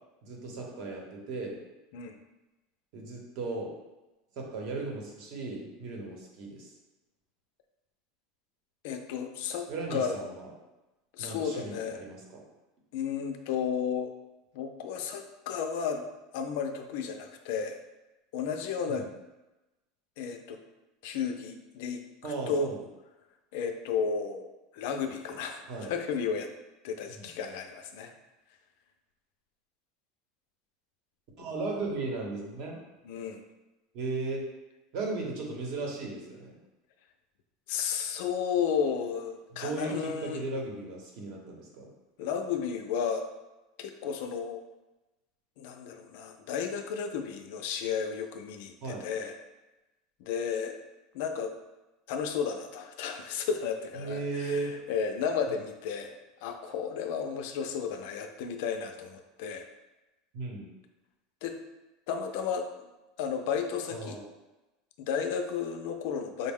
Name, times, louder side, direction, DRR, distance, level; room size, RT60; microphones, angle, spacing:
voice 1, 0.2-1.6 2.9-3.7 4.4-6.7 9.7-10.5 11.2-12.4 18.9-19.0 22.2-22.8 25.7-25.9 27.2-27.3 31.4-32.8 33.9-34.4 34.9-36.5 39.5-41.9 48.8-49.1 54.0-54.8 60.3-60.6 63.9-64.2, right 3 dB, 45° right, 0 dB, 0.9 m, -36 dB
voice 2, 8.8-10.2 11.1-12.0 12.9-14.1 14.5-16.1 16.3-17.8 18.3-19.1 20.2-20.6 21.0-22.7 23.5-26.5 26.8-28.1 33.0-33.4 37.7-40.5 42.2-43.2 43.8-44.6 45.6-49.3 50.2-50.7 51.1-51.5 52.1-59.6 61.4-61.6 62.1-62.9 63.2-64.2 65.0-66.5, left 6 dB, 60° left, 5 dB, 0.4 m, -33 dB
5.1 x 2.1 x 3.5 m, 1.0 s
supercardioid pair, 170°, 0 cm